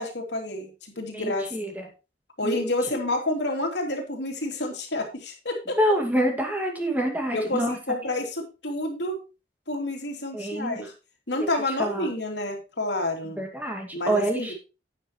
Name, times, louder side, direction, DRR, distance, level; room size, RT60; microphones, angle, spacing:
voice 1, 0.0-1.5 2.4-5.8 7.3-9.2 9.7-10.9 11.3-13.4 13.9-14.5, left 1 dB, 85° left, 2 dB, 2.9 m, -29 dB
voice 2, 1.1-1.9 2.4-3.0 5.7-7.8 10.3-10.8 11.4-11.5 11.8-12.1 13.4-14.5, right 1 dB, 10° right, 1 dB, 2.3 m, -27 dB
10.5 x 9.4 x 3.1 m, 0.30 s
head